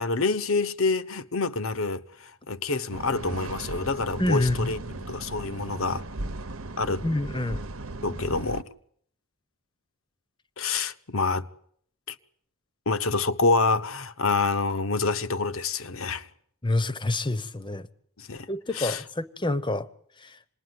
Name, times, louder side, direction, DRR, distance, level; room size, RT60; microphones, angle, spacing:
voice 1, 0.0-6.0 6.8-7.0 8.0-8.7 10.6-11.5 12.1-12.2 12.9-16.3 18.2-18.5 18.7-19.0, left 3 dB, 65° left, 1.2 m, -27 dB
sound 1, 2.9-8.6, right 2 dB, 65° right, 1.1 m, -37 dB
voice 2, 4.2-4.7 7.0-7.6 16.6-17.9 18.5-19.9 20.2-20.4, left 2 dB, 20° left, 1.0 m, -27 dB
27.0 x 20.5 x 9.6 m
head